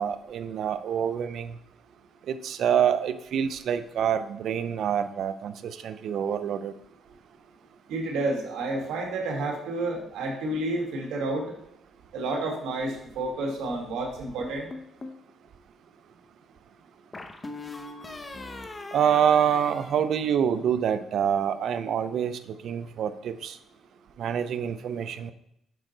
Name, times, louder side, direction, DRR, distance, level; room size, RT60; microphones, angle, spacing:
voice 1, 0.0-1.6 2.3-6.7 18.9-23.6 24.2-25.3, right 8 dB, 70° right, 12 dB, 0.5 m, -26 dB
voice 2, 7.9-11.6 12.1-14.7, right 2 dB, 90° right, 1 dB, 1.4 m, -30 dB
sound 1, 14.4-15.2 17.1-20.7, left 2 dB, 25° left, 0.7 m, -41 dB
6.4 x 4.9 x 3.9 m, 0.77 s
cardioid pair, 90°, 0 cm